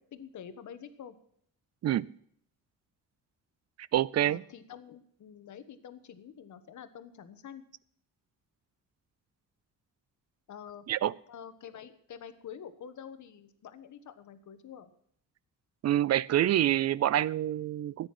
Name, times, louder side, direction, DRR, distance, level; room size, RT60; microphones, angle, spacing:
voice 1, 0.1-1.2 4.2-7.6 10.5-10.9 11.3-14.9, left 8 dB, 60° left, 1.3 m, -47 dB
voice 2, 3.9-4.4 10.9-11.2 15.8-18.1, right 12 dB, 50° right, 0.5 m, -27 dB
14.0 x 9.5 x 5.9 m
cardioid pair, 90°, 33 cm